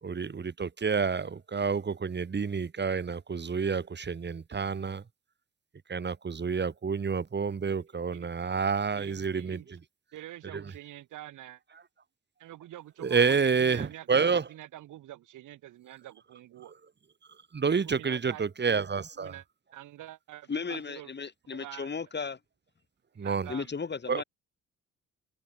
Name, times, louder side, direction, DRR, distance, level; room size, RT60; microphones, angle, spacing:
voice 1, 0.0-5.0 5.9-9.8 10.5-10.6 13.0-14.5 17.5-19.3 23.2-23.5 24.1-24.2, right 5 dB, 35° right, 3.1 m, -29 dB
voice 2, 8.9-9.7 10.1-11.6 12.4-16.7 17.6-18.4 19.2-19.4 19.7-21.1 21.5-22.0 23.2-23.7, right 13 dB, 80° right, 5.7 m, -46 dB
voice 3, 20.5-22.4 23.5-24.2, left 5 dB, 35° left, 5.0 m, -35 dB
cardioid pair, 90°, 30 cm